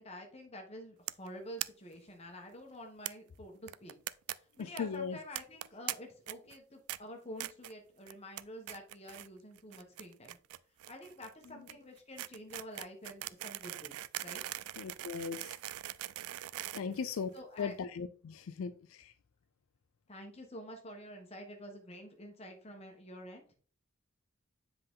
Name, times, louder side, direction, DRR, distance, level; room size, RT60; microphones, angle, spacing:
voice 1, 0.0-3.9 4.6-10.4 10.9-14.4 16.8-16.9 17.3-17.7 20.1-23.4, equal, 30° left, 3 dB, 1.2 m, -48 dB
sound 1, 1.1-1.3 1.6-1.7 1.9-2.0 2.2-2.3 3.1-3.2 3.7-4.3 4.6-4.8 5.4-5.9 6.3-6.6 6.9-7.0 7.4-7.7 8.1-8.4 8.7-9.3 9.6-17.6, right 15 dB, 90° right, 0.3 m, -41 dB
voice 2, 4.6-5.2 14.8-15.6 16.7-17.3 17.6-19.1, left 6 dB, 75° left, 11 dB, 0.4 m, -38 dB
7.6 x 4.0 x 3.7 m, 0.44 s
head